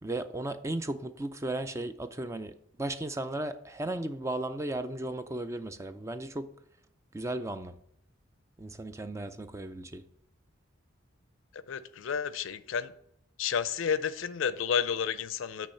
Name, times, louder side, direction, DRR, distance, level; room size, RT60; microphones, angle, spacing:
voice 1, 0.0-2.5 2.8-6.5 7.1-7.8 8.6-10.0, right 2 dB, 15° right, 0.4 m, -35 dB
voice 2, 11.7-12.9 13.4-15.7, left 7 dB, 70° left, 0.4 m, -31 dB
8.5 x 3.2 x 5.4 m
head